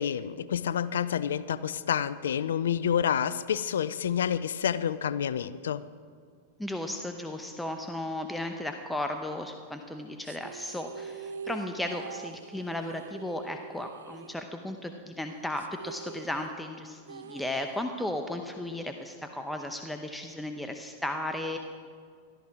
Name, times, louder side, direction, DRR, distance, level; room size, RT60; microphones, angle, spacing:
voice 1, 0.0-5.8, left 8 dB, 75° left, 16 dB, 0.4 m, -28 dB
voice 2, 6.6-21.6, left 1 dB, 5° left, 5 dB, 0.8 m, -35 dB
sound 1, 10.2-14.9 15.2-15.3 15.6-18.2, right 6 dB, 80° right, 0.5 m, -44 dB
13.5 x 13.5 x 4.8 m, 2.1 s
hypercardioid pair, 105°, 0 cm